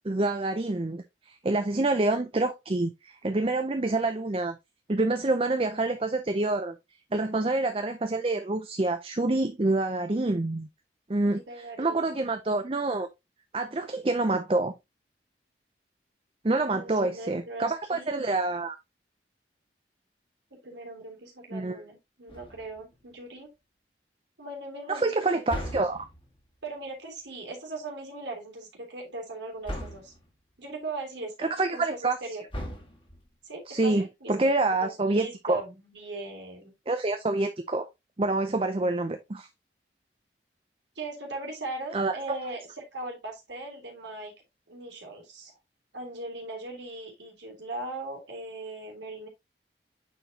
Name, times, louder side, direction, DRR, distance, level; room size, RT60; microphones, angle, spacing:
voice 1, 0.0-4.6 4.9-6.7 7.1-10.7 11.1-13.1 13.5-14.7 16.4-18.8 21.5-21.8 24.9-26.1 31.4-32.2 33.7-35.6 36.9-37.9 38.2-39.5 41.9-42.1, right 2 dB, 30° right, 0.5 m, -27 dB
voice 2, 11.2-12.1 16.6-18.1 20.5-23.5 24.4-25.4 26.6-30.1 30.6-32.4 33.4-34.5 34.8-36.7 40.9-44.3 44.7-45.5 45.9-49.3, right 2 dB, 85° right, 3.2 m, -39 dB
sound 1, 22.3-22.9 25.5-26.4 29.7-30.3 32.5-33.3, equal, 30° left, 2.1 m, -38 dB
9.1 x 4.5 x 2.8 m
head